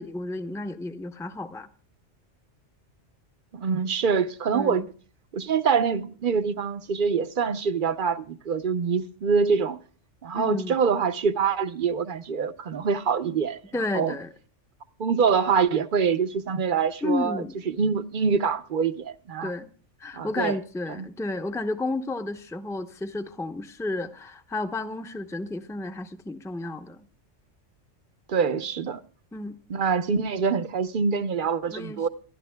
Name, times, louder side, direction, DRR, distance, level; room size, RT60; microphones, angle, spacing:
voice 1, 0.0-1.7 4.5-4.9 10.3-10.8 13.7-14.3 17.0-17.5 19.4-19.7 20.0-27.1 29.3-29.6 31.7-32.1, left 2 dB, 5° left, 0.7 m, -32 dB
voice 2, 3.5-4.8 5.3-9.8 10.2-13.6 13.9-14.1 15.0-19.5 20.1-20.6 21.0-21.1 28.3-29.0 29.7-32.1, right 6 dB, 50° right, 0.8 m, -25 dB
27.0 x 11.0 x 2.2 m
omnidirectional pair, 1.2 m